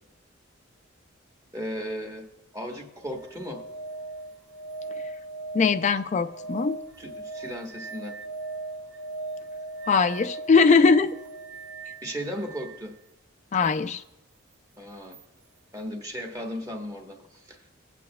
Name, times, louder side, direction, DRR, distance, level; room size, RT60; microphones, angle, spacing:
voice 1, 1.5-2.3 2.5-3.6 7.0-8.2 12.0-13.0 14.8-15.2 15.7-17.7, equal, 15° right, 2 dB, 1.1 m, -36 dB
sound 1, 3.0-12.8 15.1-15.2, right 3 dB, 55° right, 0.9 m, -39 dB
voice 2, 5.5-6.8 9.9-11.1 13.5-14.0, left 4 dB, 35° left, 9 dB, 0.3 m, -20 dB
17.5 x 8.5 x 2.2 m, 0.96 s
head